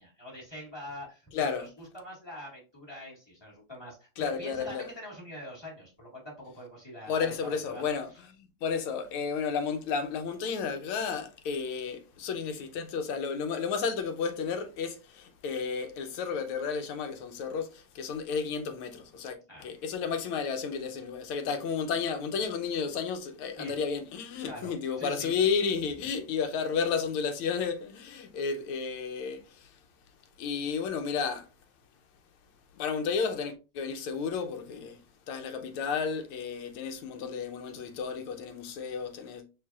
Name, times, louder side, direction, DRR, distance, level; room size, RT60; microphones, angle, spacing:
voice 1, 0.0-7.8 19.5-19.7 23.6-23.8 24.4-25.4, left 1 dB, 10° left, 1.9 m, -44 dB
voice 2, 1.3-1.6 4.2-4.9 7.1-29.7 30.4-31.5 32.7-35.0 35.3-39.4, left 6 dB, 85° left, 1.6 m, -32 dB
5.9 x 3.2 x 2.4 m
omnidirectional pair, 2.3 m